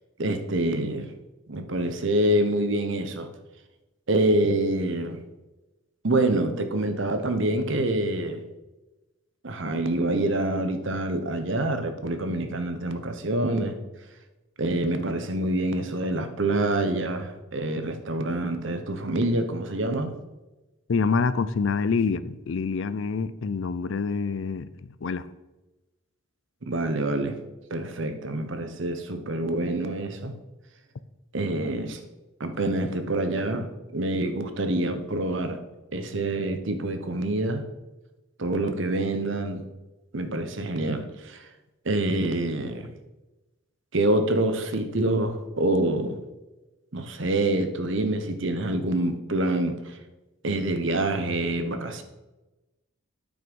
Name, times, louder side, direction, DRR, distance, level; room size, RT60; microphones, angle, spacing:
voice 1, 0.2-1.1 1.5-3.3 4.1-5.2 6.0-8.4 9.4-13.8 14.6-20.1 26.6-27.4 27.7-30.3 31.3-32.0 32.4-35.6 35.9-37.6 38.4-39.6 40.1-41.4 41.8-42.9 43.9-46.2 46.9-49.9 50.4-52.0, right 1 dB, 60° right, 8 dB, 1.0 m, -26 dB
voice 2, 20.9-25.3, left 5 dB, 65° left, 15 dB, 0.4 m, -26 dB
8.9 x 5.9 x 5.4 m, 1.1 s
head